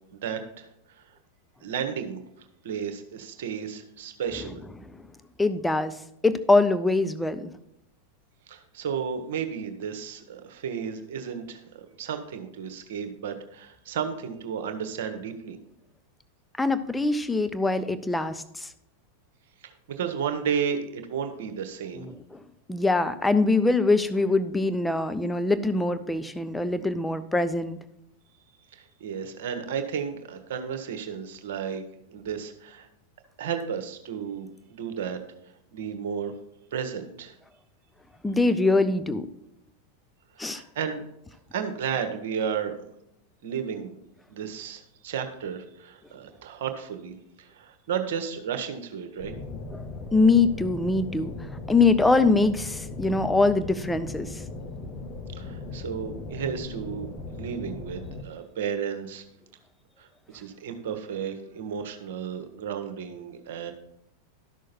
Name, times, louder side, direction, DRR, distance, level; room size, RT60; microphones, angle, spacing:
voice 1, 0.1-1.0 1.6-2.2 2.6-4.6 8.5-15.6 19.6-22.1 28.7-31.8 32.1-32.9 33.4-35.2 35.7-36.3 36.7-37.3 40.3-41.0 41.5-42.9 43.4-44.0 44.3-49.3 55.3-59.2 60.0-63.7, right 7 dB, 55° right, 7 dB, 1.3 m, -33 dB
voice 2, 5.4-6.0 6.2-7.5 16.6-18.7 21.9-22.4 22.7-27.8 38.2-39.3 40.4-40.6 49.7-49.8 50.1-54.4, left 3 dB, 5° left, 12 dB, 0.6 m, -23 dB
sound 1, 49.2-58.2, left 2 dB, 30° left, 1.1 m, -38 dB
12.5 x 6.4 x 4.3 m, 0.80 s
figure-of-eight pair, 90°, 0 cm